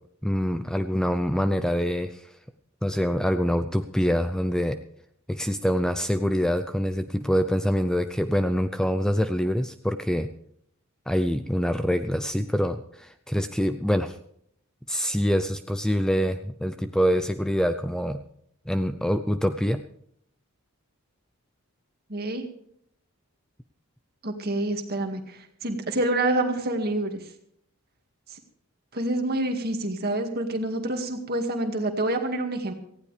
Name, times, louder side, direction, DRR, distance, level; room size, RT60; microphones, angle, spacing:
voice 1, 0.2-2.3 2.8-4.8 5.3-10.3 11.1-14.2 14.9-18.2 18.7-19.8, equal, 5° left, 9 dB, 0.5 m, -25 dB
voice 2, 22.1-22.5 24.2-27.2 28.3-28.4 28.9-32.7, right 1 dB, 45° right, 5 dB, 2.1 m, -27 dB
18.0 x 15.0 x 3.4 m, 0.69 s
head